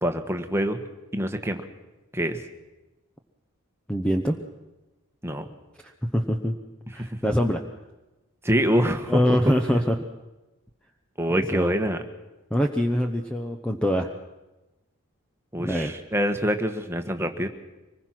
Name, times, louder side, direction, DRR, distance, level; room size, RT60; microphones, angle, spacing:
voice 1, 0.0-0.8 1.1-1.6 2.1-2.4 5.2-5.5 7.0-7.1 8.4-9.4 11.2-12.0 15.5-17.5, equal, 10° right, 6 dB, 1.4 m, -25 dB
voice 2, 3.9-4.4 5.8-6.6 6.9-7.6 9.1-10.0 11.3-11.7 12.5-14.1 15.6-15.9, equal, 5° left, 4 dB, 0.9 m, -24 dB
25.0 x 20.5 x 6.0 m, 1.1 s
head